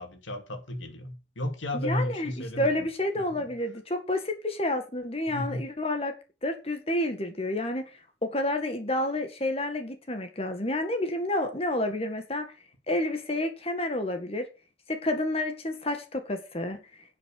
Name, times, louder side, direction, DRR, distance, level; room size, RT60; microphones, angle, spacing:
voice 1, 0.0-2.9 3.2-3.5 5.3-5.7, left 1 dB, 85° left, 3.0 m, -33 dB
voice 2, 1.7-6.1 6.4-7.8 8.2-12.5 12.9-14.5 14.9-16.8, left 1 dB, 30° left, 1.9 m, -29 dB
11.0 x 8.0 x 6.6 m
head